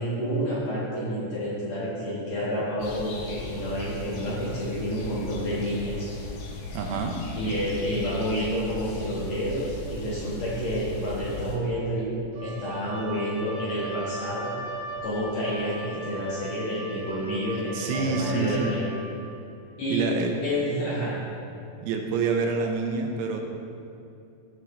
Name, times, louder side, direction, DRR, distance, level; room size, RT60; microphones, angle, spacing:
voice 1, 0.0-6.1 7.4-12.1 12.4-14.5 15.0-18.9 19.8-20.1 20.4-21.1, equal, 55° left, -8 dB, 2.1 m, -29 dB
sound 1, 2.8-11.6, left 2 dB, 80° left, 1.7 m, -38 dB
voice 2, 6.7-7.2 17.7-18.7 19.9-20.3 21.8-23.4, right 5 dB, 90° right, 2 dB, 2.8 m, -27 dB
Wind instrument woodwind instrument, 12.3-19.0, right 2 dB, 70° right, 2.8 m, -38 dB
15.0 x 5.9 x 3.2 m, 2.6 s
omnidirectional pair, 4.8 m